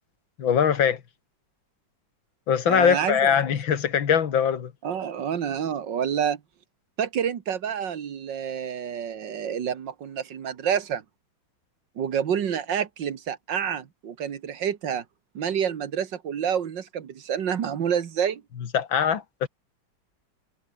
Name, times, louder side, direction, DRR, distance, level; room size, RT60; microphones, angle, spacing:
voice 1, 0.4-1.0 2.5-4.7 18.7-19.5, left 8 dB, 85° left, 2.4 m, -22 dB
voice 2, 2.7-3.3 4.8-6.4 7.0-11.0 12.0-15.0 15.4-18.4, right 8 dB, 70° right, 2.1 m, -28 dB
omnidirectional pair, 2.1 m